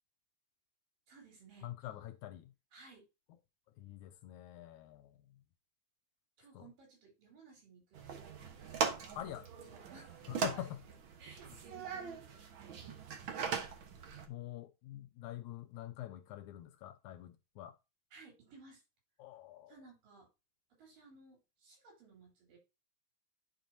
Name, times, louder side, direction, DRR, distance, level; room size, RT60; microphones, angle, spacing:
voice 1, 1.1-2.0 2.7-3.1 6.4-9.1 9.5-10.9 11.2-12.8 18.1-18.8 19.7-20.3 20.8-22.6, right 4 dB, 80° right, 5.3 m, -59 dB
voice 2, 1.6-2.5 3.8-5.4 6.5-6.7 9.2-9.5 10.3-10.8 14.3-17.8 19.2-19.8, left 12 dB, 80° left, 1.8 m, -46 dB
sound 1, 7.9-14.3, right 6 dB, 65° right, 1.2 m, -40 dB
10.5 x 5.0 x 2.7 m
omnidirectional pair, 3.8 m